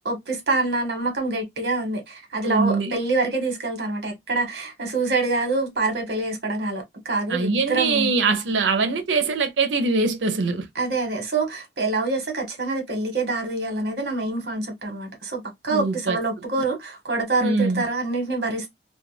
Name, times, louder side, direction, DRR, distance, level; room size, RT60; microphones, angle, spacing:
voice 1, 0.0-8.1 10.7-18.7, right 3 dB, 60° right, 1.1 m, -26 dB
voice 2, 2.4-3.0 7.3-10.7 15.7-16.2 17.4-17.8, right 4 dB, 85° right, 0.6 m, -23 dB
2.4 x 2.2 x 3.1 m
head